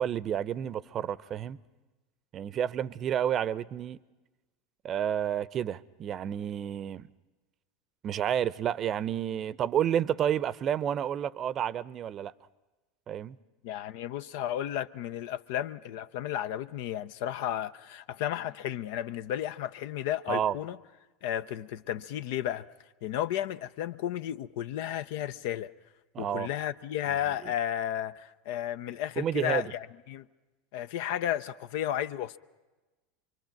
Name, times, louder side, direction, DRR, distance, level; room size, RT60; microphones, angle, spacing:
voice 1, 0.0-1.6 2.3-4.0 4.8-7.1 8.0-12.3 13.1-13.4 20.3-20.6 26.1-26.5 29.2-29.7, right 9 dB, 40° right, 0.7 m, -30 dB
voice 2, 13.6-20.8 21.2-22.6 23.0-25.7 26.2-30.3 30.7-32.4, left 11 dB, 60° left, 0.7 m, -33 dB
26.5 x 24.0 x 5.9 m
figure-of-eight pair, 80°, 0 cm